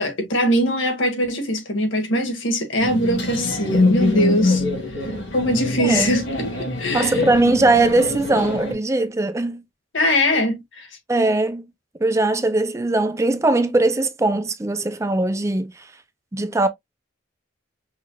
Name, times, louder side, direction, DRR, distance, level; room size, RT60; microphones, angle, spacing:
voice 1, 0.0-4.6 5.0-5.1 5.3-6.5 6.8-7.2 9.9-10.9, equal, 90° left, 1.7 m, -21 dB
sound 1, 2.8-8.7, left 2 dB, 75° left, 3.1 m, -24 dB
voice 2, 5.8-6.2 6.9-9.6 11.1-11.6 12.0-15.9 16.3-16.7, right 2 dB, 15° right, 0.4 m, -20 dB
5.6 x 3.1 x 2.2 m
head